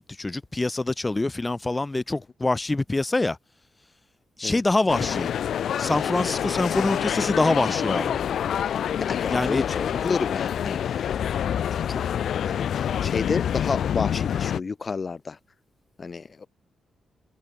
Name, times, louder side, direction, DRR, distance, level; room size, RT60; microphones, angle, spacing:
voice 1, 0.0-3.4 4.4-5.3 5.8-8.2 9.3-9.6, left 2 dB, 20° left, 7.5 m, -25 dB
sound 1, 4.9-14.6, left 9 dB, 70° left, 2.4 m, -27 dB
voice 2, 8.9-11.1 11.7-12.0 12.4-15.4 16.0-16.5, left 4 dB, 35° left, 5.1 m, -31 dB
cardioid pair, 105°, 0 cm